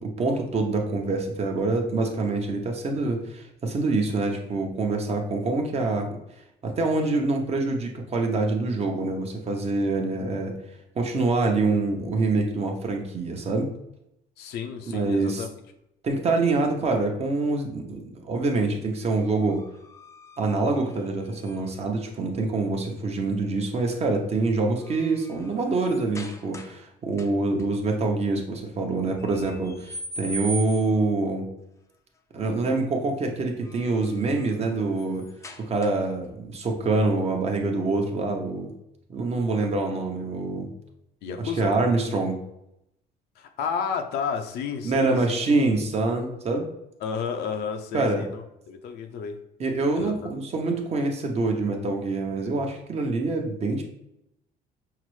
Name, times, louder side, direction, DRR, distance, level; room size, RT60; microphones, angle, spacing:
voice 1, 0.0-6.1 6.6-10.5 11.0-13.7 14.9-15.4 16.0-19.6 20.4-31.5 32.3-35.3 35.6-38.7 39.1-40.7 41.6-42.4 44.8-46.7 47.9-48.2 49.6-53.8, right 3 dB, 40° right, 2 dB, 0.7 m, -25 dB
voice 2, 14.4-15.5 41.2-41.7 43.4-45.4 47.0-49.4 50.0-50.1, left 6 dB, 75° left, 5 dB, 0.5 m, -31 dB
sound 1, 19.0-21.9 23.7-24.0 24.4-26.8 27.1-27.7 29.2-31.1 33.4-36.2, right 1 dB, 15° left, 0.4 m, -42 dB
5.6 x 2.0 x 3.1 m, 0.83 s
cardioid pair, 110°, 17 cm